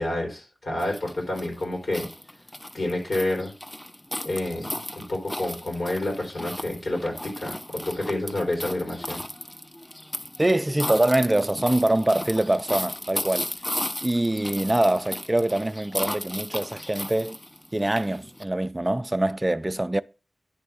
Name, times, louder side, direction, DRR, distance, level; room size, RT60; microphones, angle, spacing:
voice 1, 0.0-2.1 2.7-3.5 4.2-4.7 5.0-9.2, left 1 dB, 85° left, 3.7 m, -29 dB
sound 1, 0.8-18.4, left 1 dB, 20° left, 0.7 m, -35 dB
voice 2, 10.4-13.5 14.0-17.4 17.7-20.0, right 1 dB, 20° right, 0.4 m, -24 dB
10.5 x 3.5 x 6.9 m
wide cardioid pair, 80°, 0 cm